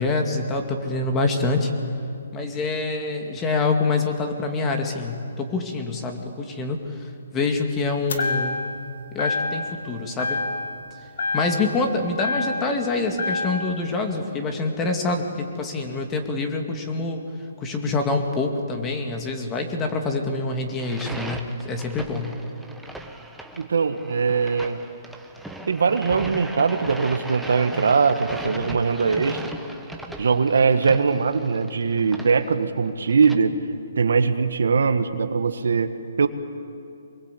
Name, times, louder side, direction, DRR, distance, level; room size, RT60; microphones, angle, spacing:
voice 1, 0.0-1.7 2.3-6.8 7.3-8.6 9.1-10.4 11.3-17.2 17.6-22.3, left 3 dB, 15° left, 4 dB, 2.4 m, -26 dB
sound 1, 8.1-8.8 9.2-9.8 10.2-10.9 11.2-12.8 13.2-13.8, left 3 dB, 70° left, 2.6 m, -27 dB
sound 2, 20.7-33.4, right 1 dB, ahead, 1.3 m, -38 dB
voice 2, 23.6-24.8 25.7-29.4 30.2-33.6 34.0-36.3, right 5 dB, 75° right, 9 dB, 1.6 m, -21 dB
24.5 x 21.5 x 8.5 m, 2.5 s
hypercardioid pair, 150°, 0 cm